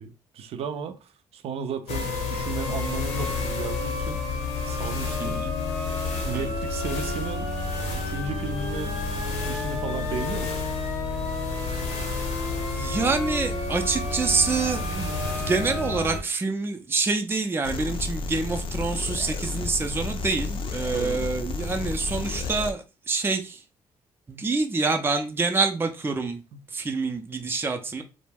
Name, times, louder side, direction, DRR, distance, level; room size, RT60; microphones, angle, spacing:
voice 1, 0.0-4.2 4.7-5.4 6.1-7.5 7.9-10.6 20.9-21.2 26.5-26.6, right 5 dB, 65° right, 0.5 m, -35 dB
sound 1, 1.9-16.2, left 3 dB, 80° left, 0.8 m, -29 dB
voice 2, 5.2-5.5 6.3-6.5 12.7-23.6 24.3-26.4 26.7-28.0, right 4 dB, 20° right, 0.5 m, -27 dB
sound 2, 17.6-22.7, left 3 dB, 55° left, 0.5 m, -31 dB
2.2 x 2.1 x 3.3 m
supercardioid pair, 65°, 11 cm